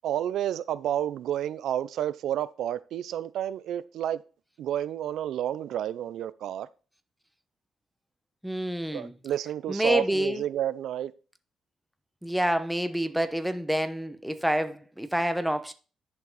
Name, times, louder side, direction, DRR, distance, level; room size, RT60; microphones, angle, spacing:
voice 1, 0.0-4.2 4.6-6.7 8.9-11.1, right 11 dB, 75° right, 0.4 m, -30 dB
voice 2, 8.4-9.1 9.7-10.4 12.2-15.7, equal, ahead, 1.0 m, -27 dB
10.5 x 5.8 x 4.1 m
cardioid pair, 90°, 0 cm